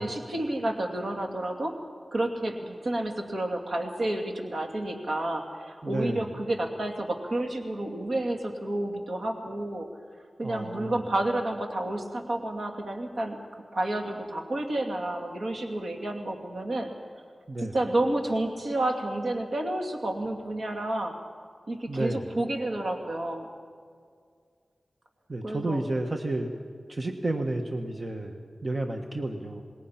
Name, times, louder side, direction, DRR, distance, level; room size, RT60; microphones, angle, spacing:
voice 1, 0.0-1.7 2.1-9.9 10.4-13.4 13.7-16.9 17.6-21.2 21.7-23.5 25.4-25.8, right 1 dB, 70° right, 2 dB, 2.5 m, -30 dB
voice 2, 5.8-6.3 10.4-11.0 17.5-17.7 21.9-22.3 25.3-26.5 26.9-29.6, right 2 dB, 35° right, 4 dB, 1.3 m, -31 dB
27.0 x 20.0 x 5.9 m, 2.1 s
wide cardioid pair, 110°, 0 cm